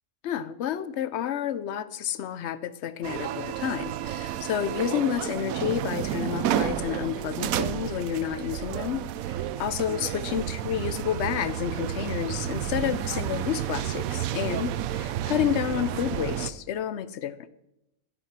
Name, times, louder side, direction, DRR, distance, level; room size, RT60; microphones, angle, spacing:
voice 1, 0.2-9.1 9.6-17.5, left 10 dB, 60° left, 0.8 m, -30 dB
sound 1, 3.0-16.5, right 11 dB, 75° right, 1.0 m, -31 dB
12.0 x 8.2 x 6.0 m
omnidirectional pair, 1.6 m